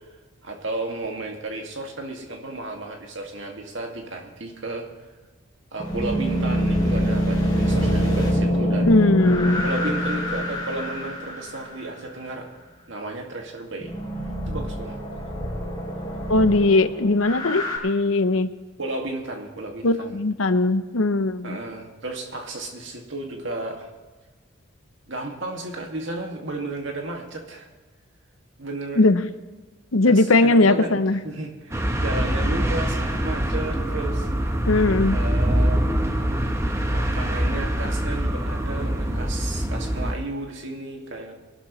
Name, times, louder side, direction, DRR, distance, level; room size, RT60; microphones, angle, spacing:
voice 1, 0.4-4.9 5.7-8.9 9.6-12.5 12.9-13.9 14.5-15.0 18.8-20.2 21.4-23.9 25.1-27.7 28.6-29.0 30.1-34.3 35.1-36.1 36.9-41.3, right 2 dB, 65° right, 1 dB, 2.2 m, -33 dB
sound 1, 5.8-11.8 13.8-17.8, equal, 20° left, 4.5 m, -25 dB
voice 2, 8.8-9.6 16.3-18.5 19.8-21.6 29.0-29.2 29.9-31.2 34.7-35.2, left 2 dB, 85° left, 11 dB, 0.8 m, -19 dB
sound 2, 31.7-40.1, equal, 15° right, 0.9 m, -24 dB
23.5 x 12.5 x 3.2 m, 1.2 s
head